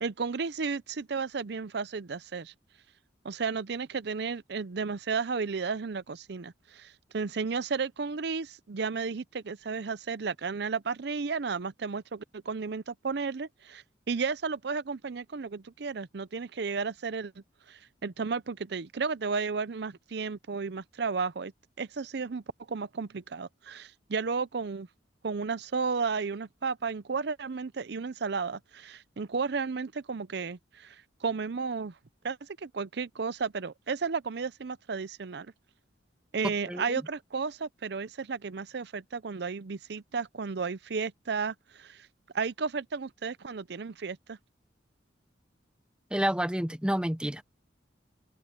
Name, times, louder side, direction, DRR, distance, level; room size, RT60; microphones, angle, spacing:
voice 1, 0.0-2.5 3.2-6.5 7.1-13.8 14.1-17.3 18.0-21.5 21.8-22.4 22.7-24.9 25.2-30.6 31.2-31.9 32.2-32.4 32.6-35.5 36.3-41.5 42.3-44.4, right 5 dB, 60° right, 0.6 m, -33 dB
voice 2, 36.4-37.1 46.1-47.4, right 1 dB, 5° right, 0.6 m, -30 dB
head